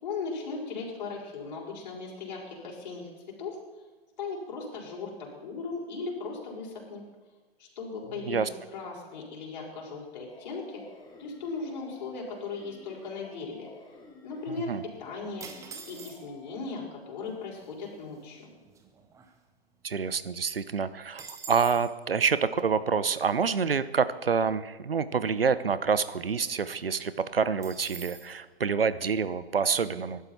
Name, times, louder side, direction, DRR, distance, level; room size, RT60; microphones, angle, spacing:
voice 1, 0.0-3.1 3.4-3.6 4.2-7.0 7.6-10.8 11.2-13.7 14.2-14.7 15.0-15.5 15.8-18.5, left 4 dB, 45° left, -3 dB, 5.6 m, -37 dB
sound 1, 10.3-16.6, left 3 dB, 15° left, 2.7 m, -52 dB
sound 2, 15.4-16.5 17.3-17.4 17.6-17.9 18.4-19.8 20.2-20.3 20.5-21.9 27.6-28.3, right 5 dB, 10° right, 1.1 m, -45 dB
voice 2, 19.8-30.2, right 6 dB, 65° right, 15 dB, 1.0 m, -27 dB
23.0 x 12.0 x 4.5 m, 1.3 s
figure-of-eight pair, 120°, 30 cm